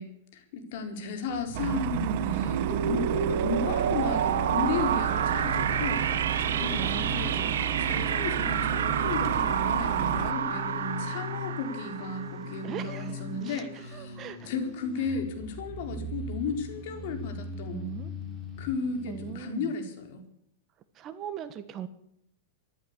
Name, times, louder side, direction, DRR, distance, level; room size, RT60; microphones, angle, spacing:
voice 1, 0.0-14.2 14.4-17.9 18.6-20.2, left 4 dB, 55° left, 5 dB, 4.4 m, -34 dB
sound 1, 1.3-13.0, right 8 dB, 85° right, 2.2 m, -29 dB
sound 2, 1.5-10.3, right 19 dB, 50° right, 0.6 m, -33 dB
sound 3, 5.1-19.3, left 3 dB, 15° left, 4.3 m, -40 dB
voice 2, 6.8-7.6 12.6-14.5 17.7-18.1 19.1-19.7 20.9-21.9, right 9 dB, 30° right, 12 dB, 1.4 m, -40 dB
14.5 x 12.0 x 8.2 m, 0.76 s
supercardioid pair, 145°, 0 cm